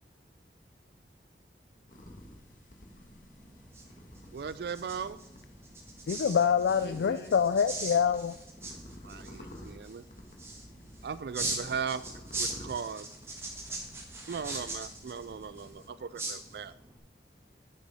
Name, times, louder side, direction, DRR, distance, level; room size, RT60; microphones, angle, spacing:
sound 1, 1.9-15.7, equal, 50° left, 1.4 m, -52 dB
sound 2, 3.4-17.0, right 2 dB, 15° right, 1.3 m, -41 dB
voice 1, 4.3-5.2 9.0-10.0 11.0-12.0 12.3-13.1 14.3-16.7, right 6 dB, 65° right, 15 dB, 0.3 m, -37 dB
voice 2, 6.1-8.3, left 7 dB, 85° left, 11 dB, 0.3 m, -26 dB
voice 3, 6.7-7.3 8.9-11.1 11.4-11.6 13.4-14.3 15.6-15.9, left 1 dB, 65° left, 8 dB, 1.0 m, -50 dB
9.4 x 6.9 x 4.8 m, 0.82 s
head